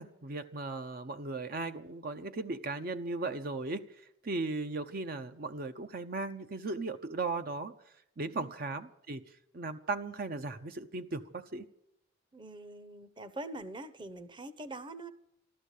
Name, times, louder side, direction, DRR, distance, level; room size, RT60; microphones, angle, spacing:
voice 1, 0.0-3.8 4.2-7.7 8.2-9.2 9.5-11.6, right 3 dB, 50° right, 9 dB, 0.7 m, -37 dB
voice 2, 12.3-15.1, right 2 dB, 25° right, 14 dB, 0.8 m, -44 dB
13.5 x 13.0 x 8.2 m, 0.81 s
head